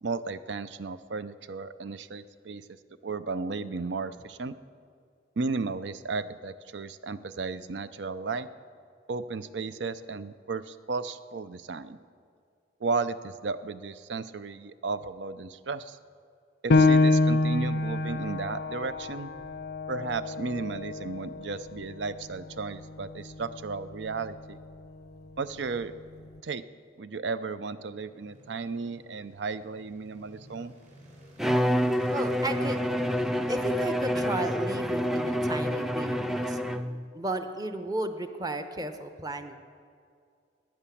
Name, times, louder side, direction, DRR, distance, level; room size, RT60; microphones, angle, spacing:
voice 1, 0.0-2.8 3.0-4.5 5.4-8.5 9.1-12.0 12.8-16.0 16.6-19.3 19.9-24.6 25.4-25.9 26.4-26.6 27.0-30.8, right 4 dB, 75° right, 14 dB, 0.6 m, -34 dB
Piano, 16.7-21.9 22.4-22.5 23.1-23.6, left 2 dB, 60° left, 0.5 m, -26 dB
sound 1, 27.6-36.0, right 1 dB, 45° right, 4.3 m, -52 dB
Bowed string instrument, 31.4-37.0, equal, ahead, 0.4 m, -28 dB
voice 2, 32.1-32.9 33.5-39.5, right 2 dB, 20° right, 8 dB, 0.8 m, -34 dB
13.0 x 9.9 x 8.5 m, 2.2 s
head